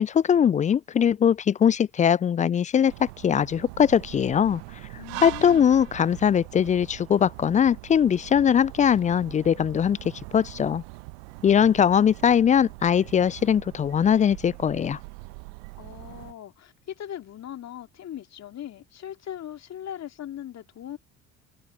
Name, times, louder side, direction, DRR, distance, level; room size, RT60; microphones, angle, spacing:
voice 1, 0.0-4.6 5.2-10.0 10.3-10.8 11.4-15.0, left 8 dB, 20° left, 0.4 m, -21 dB
sound 1, 2.9-16.3, right 35 dB, 65° right, 1.6 m, -42 dB
voice 2, 5.0-5.7 15.8-21.0, left 10 dB, 40° left, 2.6 m, -39 dB
figure-of-eight pair, 55°, 39 cm